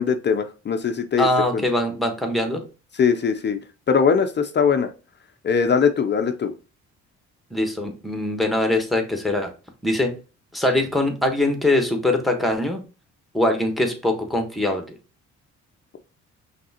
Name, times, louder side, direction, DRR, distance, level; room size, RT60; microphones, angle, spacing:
voice 1, 0.0-1.3 1.5-1.6 2.9-3.6 3.9-4.9 5.4-6.5, left 6 dB, 35° left, 8 dB, 0.5 m, -21 dB
voice 2, 1.2-2.6 7.5-9.5 9.8-10.1 10.5-12.8 13.3-14.8, left 1 dB, ahead, 4 dB, 1.2 m, -22 dB
5.2 x 3.3 x 2.8 m, 0.33 s
cardioid pair, 90°, 30 cm